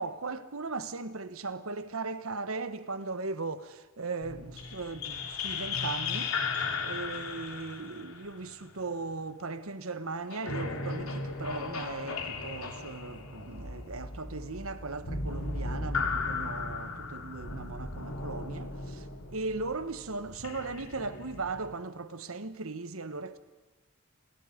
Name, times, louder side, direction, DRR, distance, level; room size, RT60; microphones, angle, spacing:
voice 1, 0.0-23.4, right 3 dB, 75° right, 1.3 m, -38 dB
sound 1, 4.2-9.3 10.3-21.8, left 4 dB, 80° left, 2.9 m, -36 dB
30.0 x 22.5 x 5.2 m
head